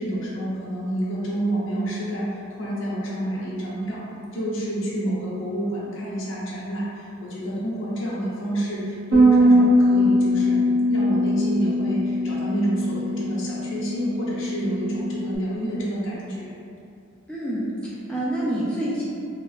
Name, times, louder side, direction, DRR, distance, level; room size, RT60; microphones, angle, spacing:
voice 1, 0.0-2.3 2.6-4.0 4.3-10.6 10.9-16.5, right 1 dB, 65° left, -7 dB, 0.7 m, -28 dB
Bass guitar, 9.1-15.4, equal, 70° right, 0.6 m, -21 dB
voice 2, 17.3-19.0, right 1 dB, 5° left, -8 dB, 0.3 m, -27 dB
2.9 x 2.5 x 2.4 m, 2.5 s
head